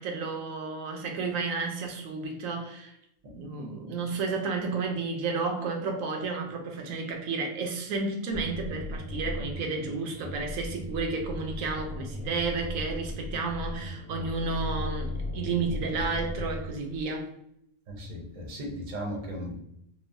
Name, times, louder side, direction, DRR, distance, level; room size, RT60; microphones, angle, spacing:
voice 1, 0.0-2.9 3.3-17.3, right 4 dB, 90° right, 3 dB, 1.0 m, -32 dB
sound 1, 8.3-17.1, left 1 dB, 75° left, 0.9 m, -37 dB
voice 2, 17.9-19.6, equal, 45° right, 0 dB, 0.6 m, -36 dB
3.0 x 2.0 x 2.5 m, 0.75 s
omnidirectional pair, 1.4 m